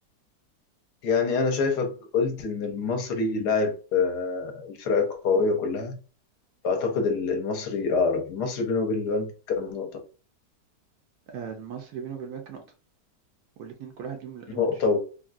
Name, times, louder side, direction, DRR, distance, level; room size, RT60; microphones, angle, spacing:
voice 1, 1.0-6.0 6.6-9.9 14.6-15.0, left 4 dB, 70° left, 1.2 m, -26 dB
voice 2, 11.3-12.6 13.6-14.7, right 7 dB, 70° right, 1.1 m, -38 dB
3.5 x 2.2 x 2.4 m
omnidirectional pair, 1.9 m